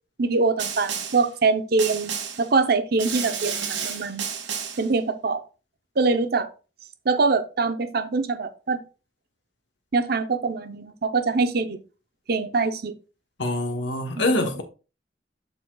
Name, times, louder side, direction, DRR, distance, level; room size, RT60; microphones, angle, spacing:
voice 1, 0.2-4.3 4.8-5.4 6.0-6.5 7.0-8.8 9.9-11.8 12.3-12.9 14.2-14.5, right 4 dB, 60° right, 0.7 m, -24 dB
Snare drum, 0.6-1.3 1.8-2.5 3.0-4.9, right 7 dB, 85° right, 1.5 m, -31 dB
voice 2, 13.4-14.6, left 1 dB, 85° left, 1.2 m, -24 dB
12.5 x 4.2 x 2.3 m
head